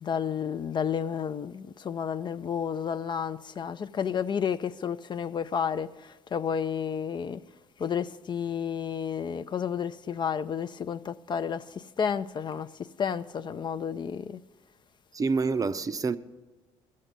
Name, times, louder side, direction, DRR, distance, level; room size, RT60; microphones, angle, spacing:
voice 1, 0.0-7.4 7.8-12.7 13.0-14.4, left 7 dB, 35° left, 0.4 m, -31 dB
voice 2, 15.1-16.2, right 4 dB, 30° right, 0.5 m, -27 dB
13.5 x 7.5 x 8.1 m
supercardioid pair, 80°, 13 cm